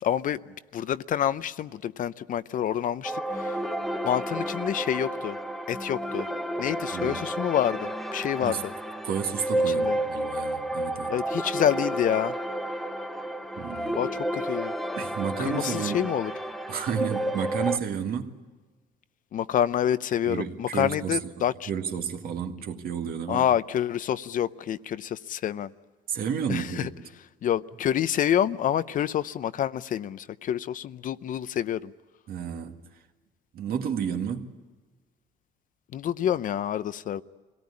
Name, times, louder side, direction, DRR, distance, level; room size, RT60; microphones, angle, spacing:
voice 1, 0.0-3.6 4.0-5.4 5.7-6.3 6.6-8.7 9.7-10.0 11.1-12.3 14.0-14.7 15.4-16.3 19.3-21.7 23.3-25.7 26.5-26.9 27.4-31.9 35.9-37.2, left 10 dB, 50° left, 0.7 m, -27 dB
sound 1, 3.0-17.8, right 1 dB, ahead, 1.0 m, -31 dB
voice 2, 9.0-11.1 13.6-14.0 15.0-16.1 16.7-18.3 20.2-21.2 21.7-23.5 26.1-26.9 32.3-32.8 33.5-34.5, right 7 dB, 65° right, 2.1 m, -31 dB
25.0 x 18.0 x 9.7 m
cardioid pair, 110°, 17 cm